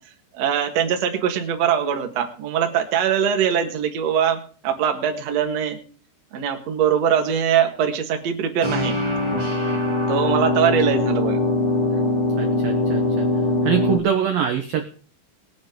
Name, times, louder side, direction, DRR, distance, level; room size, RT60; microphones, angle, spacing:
voice 1, 0.3-5.8 6.3-8.9 10.1-11.4, right 8 dB, 55° right, 3 dB, 2.0 m, -22 dB
sound 1, 8.6-14.0, left 2 dB, 15° right, 0.9 m, -22 dB
voice 2, 12.4-13.3 13.6-14.8, right 9 dB, 70° right, 4 dB, 2.3 m, -24 dB
21.0 x 8.6 x 3.9 m, 0.41 s
omnidirectional pair, 5.6 m